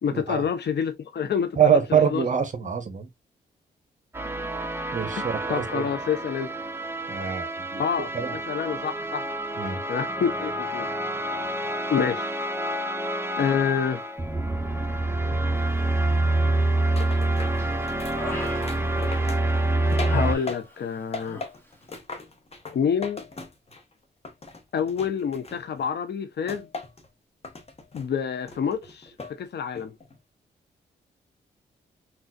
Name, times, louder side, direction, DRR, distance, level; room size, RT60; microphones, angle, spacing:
voice 1, 0.0-2.2 5.5-6.5 7.8-9.2 9.9-10.9 11.9-12.3 13.4-14.0 15.3-15.5 20.1-21.4 22.7-23.2 24.7-26.7 27.9-29.9, left 7 dB, 60° left, 0.8 m, -27 dB
voice 2, 1.6-3.1 4.9-5.9 7.1-7.8 8.1-8.4 9.6-9.8, right 7 dB, 40° right, 0.8 m, -24 dB
sound 1, 4.1-20.3, right 2 dB, 10° right, 0.6 m, -27 dB
Human voice, 16.3-16.9 17.3-19.4 19.9-21.0 21.2-21.5, left 1 dB, 10° left, 1.3 m, -39 dB
sound 2, 17.0-20.9 21.1-23.9 24.2-25.9 26.5-27.1 27.4-28.1 28.5-29.4 29.8-30.2, left 3 dB, 30° left, 1.0 m, -39 dB
3.9 x 2.3 x 2.3 m
supercardioid pair, 50°, 19 cm